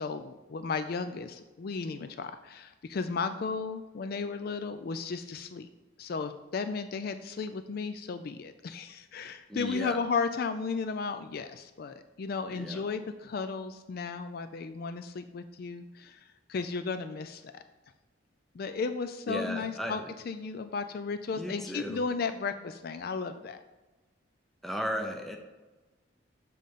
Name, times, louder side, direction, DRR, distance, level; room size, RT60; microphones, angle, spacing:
voice 1, 0.0-5.7 6.0-17.6 18.5-20.0 20.3-23.6, left 4 dB, 50° left, 10 dB, 0.4 m, -34 dB
voice 2, 9.5-10.0 12.5-12.8 19.3-20.0 21.3-22.0 24.6-25.4, equal, ahead, 3 dB, 0.6 m, -35 dB
7.2 x 3.8 x 5.6 m, 1.2 s
head